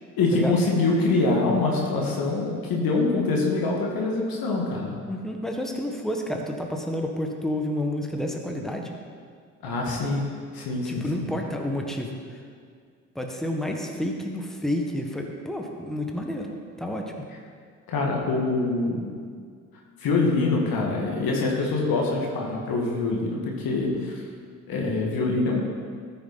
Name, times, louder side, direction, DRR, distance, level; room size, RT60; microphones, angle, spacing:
voice 1, 0.2-5.0 9.6-10.2 10.5-11.3 17.9-19.1 20.0-24.2 24.7-25.6, left 3 dB, 60° left, -1 dB, 2.0 m, -24 dB
voice 2, 5.1-8.9 10.8-12.2 13.1-16.5 16.8-17.1, left 1 dB, ahead, 1 dB, 1.5 m, -30 dB
14.0 x 6.5 x 4.1 m, 2.1 s
hypercardioid pair, 50°, 40 cm